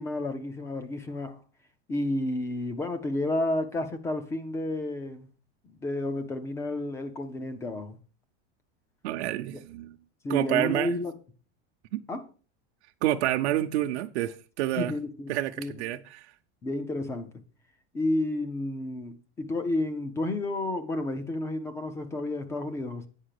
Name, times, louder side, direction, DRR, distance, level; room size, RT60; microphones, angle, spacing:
voice 1, 0.0-1.4 1.9-5.3 5.6-8.0 10.2-11.1 12.1-12.2 14.8-15.7 16.6-17.3 17.9-23.1, left 2 dB, 10° left, 0.4 m, -31 dB
voice 2, 9.0-10.0 10.3-10.9 11.9-12.0 13.0-14.9 15.3-16.3, right 14 dB, 75° right, 0.8 m, -28 dB
8.9 x 5.7 x 6.5 m
supercardioid pair, 170°, 33 cm